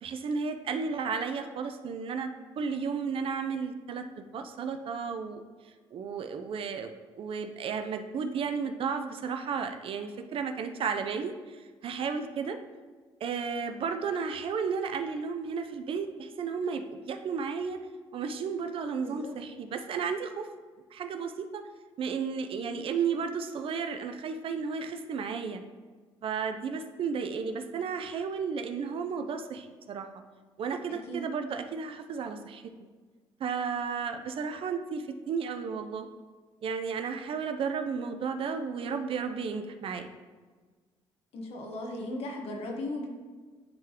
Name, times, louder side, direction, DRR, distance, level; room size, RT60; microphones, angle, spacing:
voice 1, 0.0-2.3 2.6-5.4 5.9-12.6 13.2-17.8 18.1-20.5 20.9-21.6 22.0-25.6 26.2-30.1 30.6-32.6 33.4-36.1 36.6-40.1, right 5 dB, 55° right, 7 dB, 0.6 m, -33 dB
voice 2, 41.3-43.1, left 1 dB, 65° left, 1 dB, 1.3 m, -36 dB
10.5 x 3.8 x 3.0 m, 1.4 s
supercardioid pair, 80°, 11 cm